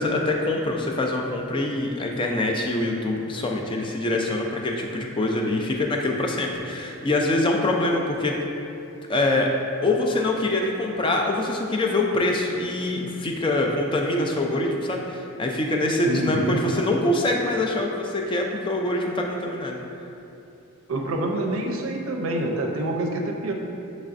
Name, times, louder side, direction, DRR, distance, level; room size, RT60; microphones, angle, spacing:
voice 1, 0.0-8.3 9.1-9.5 9.8-19.8, left 2 dB, 25° left, 1 dB, 0.3 m, -24 dB
voice 2, 16.1-16.6 20.9-23.5, right 1 dB, 75° right, 2 dB, 0.5 m, -27 dB
6.7 x 3.1 x 2.5 m, 2.8 s
head